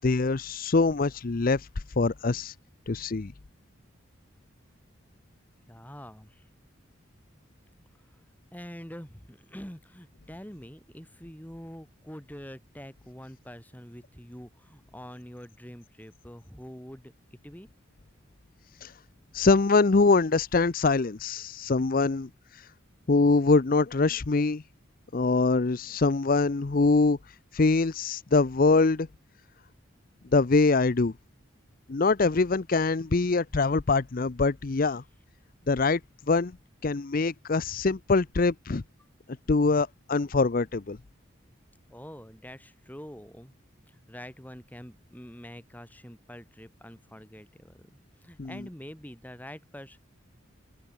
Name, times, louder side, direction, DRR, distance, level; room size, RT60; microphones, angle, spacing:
voice 1, 0.0-1.7 2.0-2.5 2.9-3.3 18.8-18.9 19.3-22.7 23.1-24.6 25.1-29.1 30.3-31.1 31.9-35.0 35.7-36.0 36.3-36.5 36.8-38.8 39.5-41.0 48.4-48.5, left 3 dB, 45° left, 0.6 m, -24 dB
voice 2, 5.7-6.4 8.5-17.7 37.7-37.8 41.9-43.5 43.9-47.9 48.2-50.0, equal, 10° left, 3.4 m, -45 dB
head